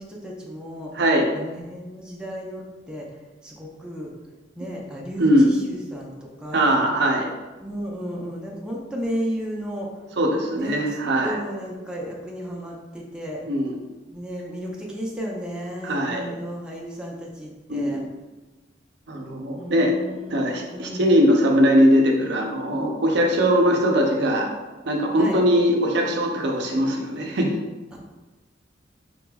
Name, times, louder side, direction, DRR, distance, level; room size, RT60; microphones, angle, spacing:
voice 1, 0.0-1.0 1.3-4.1 4.6-6.8 7.6-10.0 10.5-13.4 14.1-18.1 19.6-21.1 25.2-25.4 27.9-28.0, equal, 5° right, -3 dB, 0.6 m, -34 dB
voice 2, 0.9-1.3 5.2-5.5 6.5-7.3 10.2-11.4 13.5-13.8 15.8-16.2 17.7-18.0 19.1-19.9 20.3-24.5 24.8-27.5, equal, 65° right, 1 dB, 0.6 m, -20 dB
5.0 x 3.3 x 2.3 m, 1.2 s
head